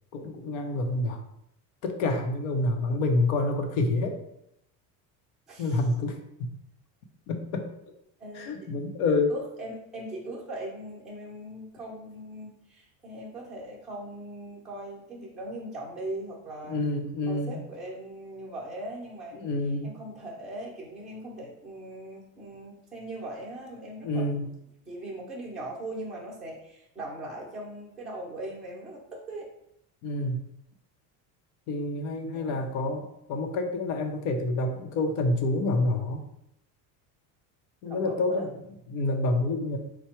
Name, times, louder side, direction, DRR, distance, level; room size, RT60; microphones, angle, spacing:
voice 1, 0.1-1.2 1.8-4.2 5.6-6.5 7.3-7.7 8.3-9.3 16.7-17.6 19.4-19.9 24.0-24.5 30.0-30.4 31.7-36.2 37.8-38.6 38.9-39.8, left 2 dB, 80° left, 4 dB, 0.8 m, -28 dB
voice 2, 5.5-5.8 8.2-8.7 9.3-16.9 17.2-19.5 19.8-24.3 24.9-29.5 32.3-32.9 37.8-38.5, right 1 dB, ahead, -6 dB, 0.6 m, -40 dB
4.6 x 2.2 x 4.3 m, 0.79 s
cardioid pair, 165°, 39 cm